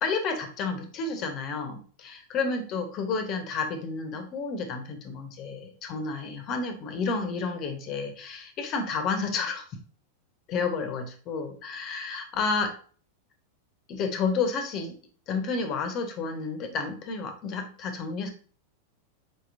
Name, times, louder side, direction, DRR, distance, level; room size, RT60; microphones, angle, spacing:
voice 1, 0.0-9.6 10.5-12.7 13.9-15.0 15.3-18.3, left 4 dB, 35° left, 6 dB, 1.0 m, -31 dB
4.5 x 4.4 x 2.5 m, 0.42 s
figure-of-eight pair, 90°, 0 cm